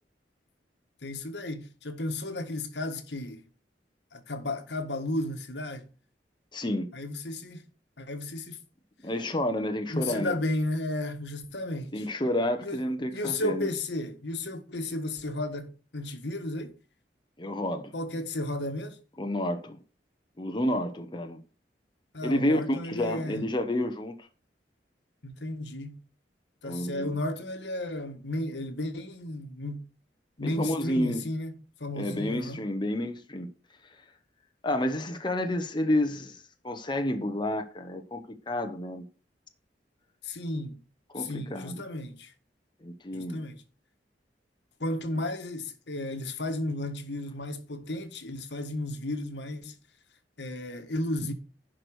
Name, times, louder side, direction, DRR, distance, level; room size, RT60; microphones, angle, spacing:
voice 1, 1.0-3.4 4.1-5.9 6.9-7.6 8.0-8.6 9.9-12.1 12.6-12.8 13.1-16.8 17.9-19.0 22.1-23.4 25.2-26.0 26.6-29.8 30.4-31.5 31.8-32.6 40.2-40.8 41.2-42.3 43.1-43.6 44.8-49.7 50.4-51.3, left 1 dB, 75° left, 1.5 m, -33 dB
voice 2, 6.5-6.9 9.0-10.3 11.9-13.7 17.4-17.9 19.2-19.8 20.4-21.4 22.2-24.2 26.6-27.1 30.4-31.3 32.0-33.5 34.6-39.0 41.1-41.8 42.8-43.4, left 1 dB, 25° left, 1.0 m, -30 dB
11.0 x 4.9 x 6.4 m
head